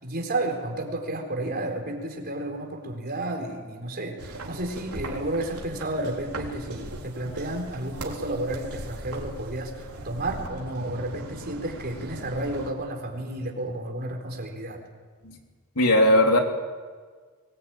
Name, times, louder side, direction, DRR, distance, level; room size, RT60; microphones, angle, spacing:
voice 1, 0.0-14.8, right 1 dB, 45° right, 2 dB, 4.2 m, -32 dB
sound 1, 4.2-12.7, right 2 dB, 85° right, 3.8 m, -39 dB
voice 2, 15.7-16.4, left 1 dB, 80° left, 2 dB, 3.3 m, -18 dB
22.5 x 20.5 x 9.1 m, 1.5 s
head